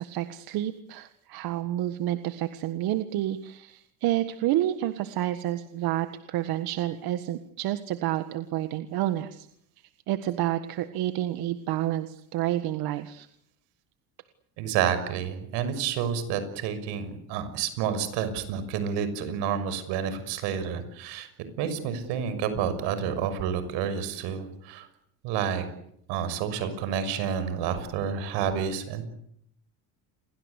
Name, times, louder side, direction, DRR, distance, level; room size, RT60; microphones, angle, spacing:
voice 1, 0.0-9.5 10.1-13.3, right 13 dB, 60° right, 10 dB, 1.7 m, -29 dB
voice 2, 14.6-21.3 21.6-24.9 25.2-25.6 26.1-29.0, right 8 dB, 80° right, 11 dB, 6.2 m, -29 dB
30.0 x 22.5 x 8.3 m, 0.71 s
cardioid pair, 140°, 41 cm